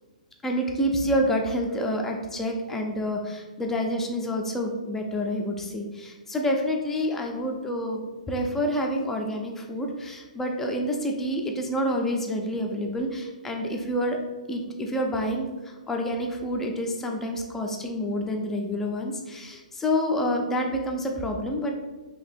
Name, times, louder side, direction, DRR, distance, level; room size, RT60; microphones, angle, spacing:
voice 1, 0.4-14.2 14.5-21.7, equal, 5° left, 1 dB, 0.4 m, -28 dB
2.9 x 2.6 x 4.2 m, 1.2 s
hypercardioid pair, 145°, 4 cm